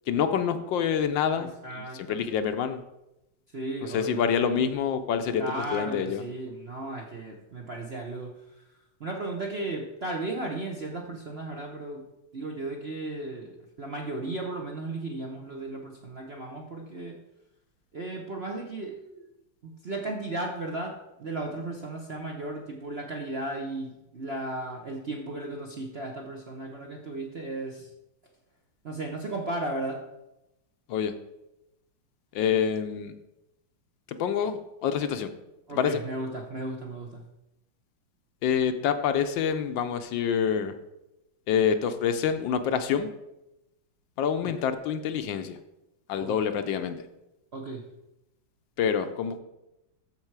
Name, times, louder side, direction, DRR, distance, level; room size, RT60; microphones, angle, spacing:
voice 1, 0.1-2.8 3.8-5.4 5.7-6.2 30.9-31.1 32.3-33.1 34.1-35.3 35.7-36.0 38.4-40.7 41.5-43.1 44.2-45.6 46.1-47.0 48.8-49.4, left 7 dB, 75° left, 9 dB, 1.3 m, -27 dB
voice 2, 1.4-2.2 3.5-4.5 5.4-8.4 9.0-12.0 12.3-13.5 13.8-17.2 17.9-19.3 19.6-27.9 28.8-30.0 35.7-37.2 44.4-44.5 46.2-46.4 47.5-47.8, right 2 dB, 50° right, 1 dB, 0.7 m, -35 dB
13.0 x 4.4 x 4.6 m, 0.91 s
omnidirectional pair, 2.2 m